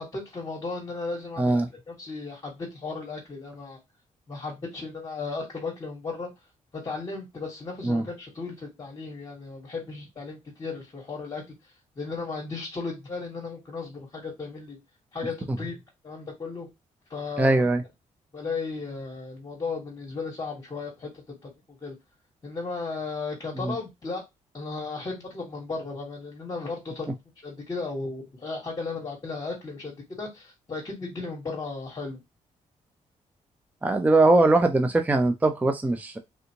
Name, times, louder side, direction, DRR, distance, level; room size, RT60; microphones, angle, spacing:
voice 1, 0.0-3.8 4.3-6.3 6.7-11.4 12.0-14.8 15.1-15.7 16.0-16.7 17.1-17.5 18.3-21.1 21.4-21.9 22.4-24.2 24.5-27.1 27.4-32.2, left 4 dB, 30° left, -2 dB, 1.3 m, -35 dB
voice 2, 1.4-1.7 7.8-8.0 17.4-17.8 23.6-23.7 33.8-36.2, right 2 dB, 10° right, 7 dB, 0.4 m, -21 dB
3.4 x 2.7 x 2.8 m, 0.20 s
cardioid pair, 125°, 13 cm